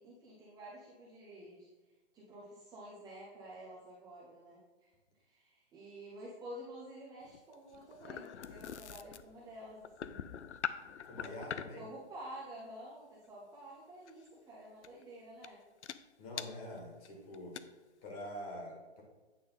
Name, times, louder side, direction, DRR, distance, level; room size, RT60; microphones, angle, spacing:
voice 1, 0.0-1.7 2.1-4.9 5.2-10.2 11.8-15.6, right 1 dB, 10° right, -6 dB, 0.8 m, -50 dB
sound 1, 7.2-11.9 14.1-14.3 14.8-15.0 15.4-15.5 15.8-16.0 16.4-16.5 17.0-17.1 17.3-17.6, left 8 dB, 80° left, 0.6 m, -43 dB
voice 2, 11.0-11.8 16.2-17.6 18.0-19.0, left 1 dB, 35° left, 0 dB, 2.1 m, -45 dB
8.9 x 3.7 x 5.5 m, 1.2 s
hypercardioid pair, 145°, 34 cm